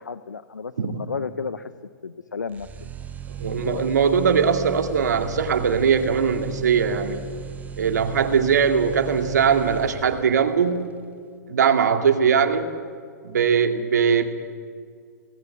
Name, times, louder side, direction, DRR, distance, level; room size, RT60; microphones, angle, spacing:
voice 1, 0.0-1.7 2.0-2.9 3.4-4.0, left 5 dB, 90° left, 14 dB, 0.7 m, -33 dB
sound 1, 2.5-10.5, right 7 dB, 15° right, 1.2 m, -36 dB
voice 2, 3.4-7.2 7.8-10.9 11.5-12.7 13.2-14.3, right 6 dB, 75° right, 7 dB, 2.1 m, -20 dB
25.5 x 19.0 x 8.2 m, 2.1 s
hypercardioid pair, 115°, 9 cm